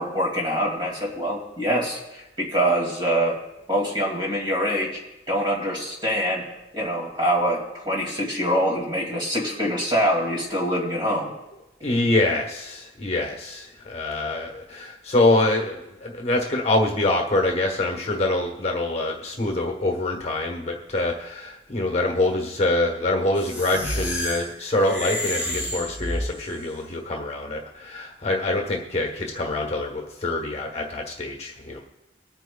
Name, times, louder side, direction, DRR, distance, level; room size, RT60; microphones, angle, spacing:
voice 1, 0.0-3.4 3.7-5.0 5.3-6.5 6.7-11.3, equal, 25° right, -2 dB, 2.5 m, -24 dB
voice 2, 11.8-31.8, left 2 dB, 35° left, 2 dB, 1.3 m, -25 dB
sound 1, 23.3-26.6, left 1 dB, 10° right, 4.7 m, -30 dB
23.5 x 9.1 x 2.3 m, 0.98 s
head